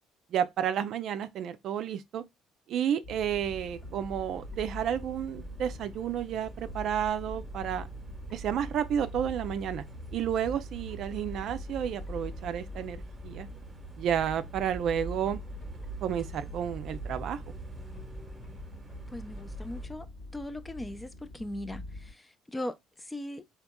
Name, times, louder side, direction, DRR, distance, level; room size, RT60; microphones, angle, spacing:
voice 1, 0.3-2.2 2.7-7.9 8.3-9.8 10.1-13.5 14.0-15.4 16.0-17.4, right 9 dB, 65° right, 0.4 m, -31 dB
sound 1, 3.0-22.1, left 2 dB, 70° left, 1.8 m, -44 dB
sound 2, 3.1-19.9, right 4 dB, 20° right, 1.0 m, -45 dB
voice 2, 19.1-20.1 20.3-23.5, left 1 dB, 15° left, 0.5 m, -39 dB
3.5 x 2.9 x 2.2 m
hypercardioid pair, 60°, 0 cm